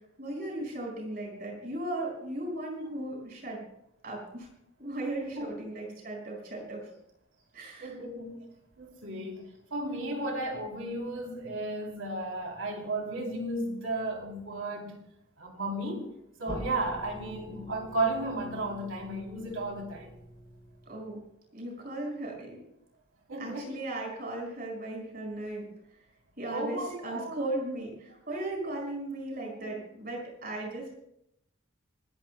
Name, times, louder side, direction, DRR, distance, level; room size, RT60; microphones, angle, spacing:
voice 1, 0.2-3.6 4.0-4.5 4.8-6.9 7.5-7.9 20.9-21.2 21.5-22.6 23.4-25.7 26.4-31.0, right 1 dB, 45° right, 5.5 m, -37 dB
voice 2, 7.8-8.4 8.8-15.0 15.4-16.1 16.4-20.1 23.3-23.7 26.5-27.4 29.6-29.7, right 2 dB, 75° right, 3.2 m, -34 dB
sound 1, 16.5-21.3, equal, 25° left, 4.2 m, -46 dB
26.0 x 14.5 x 2.2 m
head